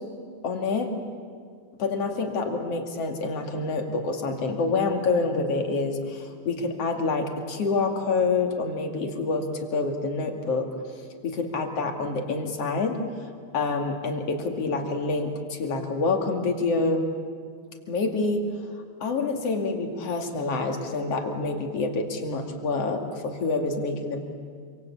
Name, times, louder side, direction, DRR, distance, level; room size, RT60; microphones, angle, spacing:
voice 1, 0.4-0.9 1.8-10.7 11.2-13.0 13.5-17.0 17.9-18.4 19.0-24.2, left 3 dB, 55° left, 4 dB, 3.2 m, -27 dB
26.5 x 25.0 x 8.5 m, 2.1 s
omnidirectional pair, 3.5 m